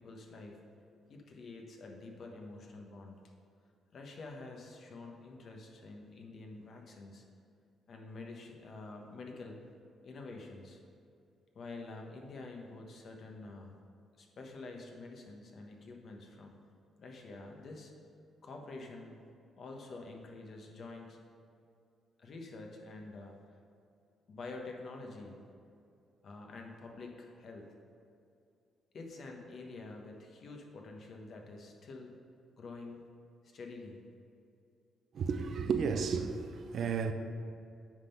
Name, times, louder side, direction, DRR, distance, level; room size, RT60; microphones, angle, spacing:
voice 1, 0.0-3.2 3.9-7.2 7.9-9.7 10.0-10.8 11.5-13.8 14.2-16.5 17.0-17.9 18.4-19.2 19.6-21.2 22.2-23.4 24.3-25.4 26.2-27.8 28.9-32.1 32.6-33.0 33.4-34.0, left 3 dB, 55° left, 1.2 m, -47 dB
voice 2, 35.1-37.1, right 5 dB, 60° right, 0.6 m, -33 dB
9.5 x 3.8 x 5.8 m
cardioid pair, 90°, 0 cm